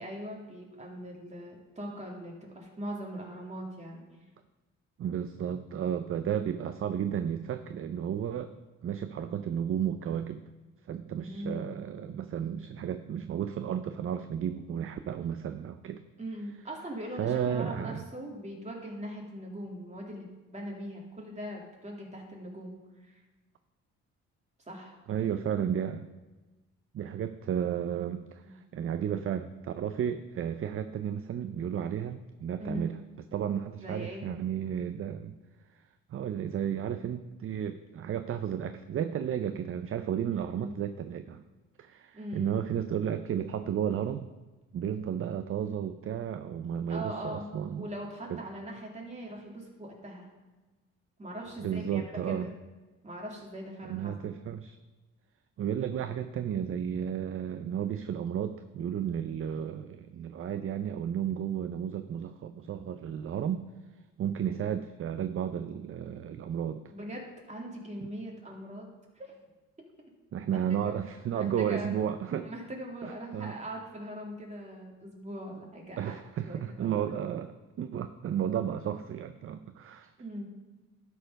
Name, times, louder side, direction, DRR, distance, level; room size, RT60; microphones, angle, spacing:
voice 1, 0.0-4.0 11.2-11.7 16.2-22.7 23.1-23.2 24.7-24.9 28.4-28.5 32.6-32.9 33.8-34.3 40.3-40.8 42.1-42.6 46.9-47.5 47.8-50.3 51.2-52.5 53.0-54.1 66.9-69.3 70.8-70.9 71.3-71.9 72.4-76.1 76.5-77.0 80.2-80.5, equal, 25° right, -1 dB, 2.5 m, -41 dB
voice 2, 5.0-8.5 8.8-10.4 10.9-16.0 17.2-18.0 25.1-26.1 26.9-33.0 33.3-35.3 36.1-41.4 41.8-44.3 44.7-47.9 48.3-48.4 51.6-52.5 53.8-54.8 55.6-63.6 64.2-66.8 70.3-72.5 73.0-73.6 76.0-77.5 77.8-80.1, right 9 dB, 45° right, 10 dB, 0.5 m, -33 dB
12.0 x 4.6 x 5.3 m, 1.2 s
cardioid pair, 90°, 30 cm